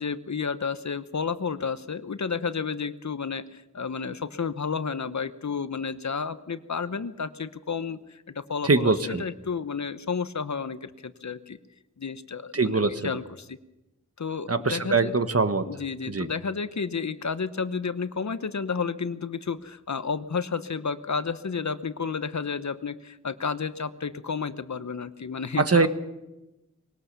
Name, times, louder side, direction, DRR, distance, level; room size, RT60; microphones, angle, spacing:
voice 1, 0.0-11.6 12.0-13.6 14.2-15.1 15.6-25.9, left 5 dB, 70° left, 12 dB, 1.0 m, -31 dB
voice 2, 8.6-9.2 12.5-13.0 14.5-15.7 16.1-16.3 25.7-25.9, right 3 dB, 55° right, 10 dB, 1.3 m, -22 dB
21.0 x 18.5 x 6.9 m, 0.97 s
wide cardioid pair, 55°, 30 cm